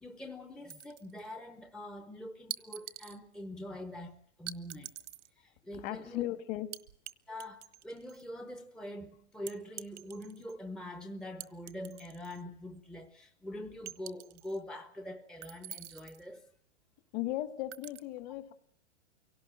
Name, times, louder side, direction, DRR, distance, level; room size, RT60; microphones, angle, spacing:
voice 1, 0.0-4.9 5.4-6.3 7.3-16.5, left 1 dB, ahead, 7 dB, 0.8 m, -44 dB
sound 1, 0.7-1.3 2.5-3.2 4.5-5.3 6.7-7.1 7.4-8.3 9.5-10.5 11.4-12.4 12.8-12.9 13.9-14.6 15.4-16.2 17.7-18.0, right 11 dB, 75° right, 1.3 m, -45 dB
voice 2, 5.8-6.7 17.1-18.5, left 15 dB, 40° left, 11 dB, 1.7 m, -36 dB
24.5 x 17.5 x 7.3 m, 0.69 s
hypercardioid pair, 140°, 36 cm